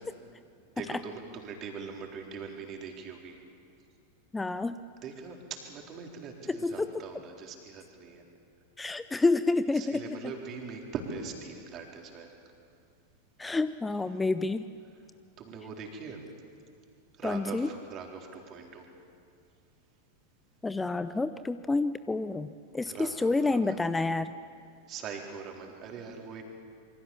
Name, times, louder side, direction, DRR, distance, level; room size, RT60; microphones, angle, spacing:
voice 1, 0.8-3.4 5.0-8.2 9.7-12.3 15.4-16.2 17.2-18.9 22.9-23.8 24.9-26.4, right 5 dB, 30° right, 2 dB, 4.0 m, -41 dB
voice 2, 4.3-4.8 6.5-6.9 8.8-10.0 13.4-14.7 17.2-17.7 20.6-22.5 22.7-24.3, left 3 dB, 10° left, 13 dB, 0.6 m, -28 dB
27.0 x 24.0 x 7.2 m, 2.3 s
figure-of-eight pair, 90°, 0 cm